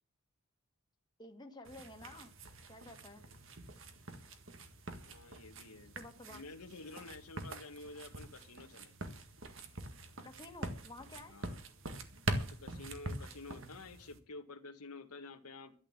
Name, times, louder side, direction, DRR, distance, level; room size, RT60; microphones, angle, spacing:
voice 1, 1.2-2.3 2.7-3.3 6.0-6.4 10.2-11.4, left 2 dB, 20° left, 3 dB, 1.7 m, -51 dB
sound 1, 1.6-14.2, right 2 dB, 60° right, 1.8 m, -44 dB
voice 2, 5.0-5.9 6.2-8.9 11.3-11.6 12.3-15.7, left 3 dB, 90° left, 6 dB, 1.8 m, -50 dB
13.0 x 8.9 x 7.4 m, 0.41 s
head